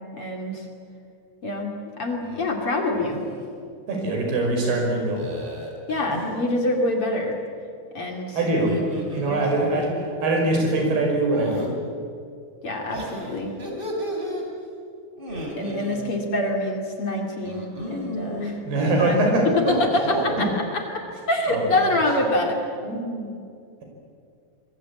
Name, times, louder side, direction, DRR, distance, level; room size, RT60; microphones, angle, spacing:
voice 1, 0.2-0.6 1.4-1.7 2.0-3.2 5.9-7.4 7.9-8.4 9.2-9.4 12.6-13.5 15.6-18.6 19.0-22.6, left 2 dB, 40° left, 1 dB, 3.0 m, -25 dB
sound 1, 2.2-2.6 2.9-3.4 5.2-6.4 8.5-9.9 11.3-11.7 12.9-14.4 15.2-16.0 17.4-18.5 19.5-20.5, equal, 15° right, 3.5 m, -33 dB
voice 2, 3.9-5.3 8.4-8.8 9.1-11.7 18.6-19.8 20.4-20.5 21.5-22.0 22.8-23.4, right 2 dB, 85° right, 1 dB, 7.3 m, -23 dB
25.5 x 22.0 x 8.5 m, 2.4 s
omnidirectional pair, 4.4 m